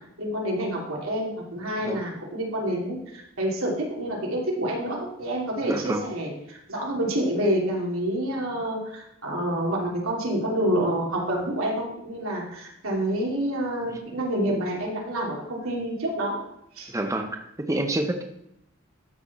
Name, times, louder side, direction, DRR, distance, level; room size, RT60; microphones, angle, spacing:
voice 1, 0.2-16.4 16.7-16.9, right 1 dB, 90° right, -2 dB, 2.8 m, -28 dB
voice 2, 5.6-6.0 16.9-18.2, right 1 dB, 15° right, 5 dB, 0.7 m, -28 dB
12.5 x 6.5 x 4.2 m, 0.79 s
head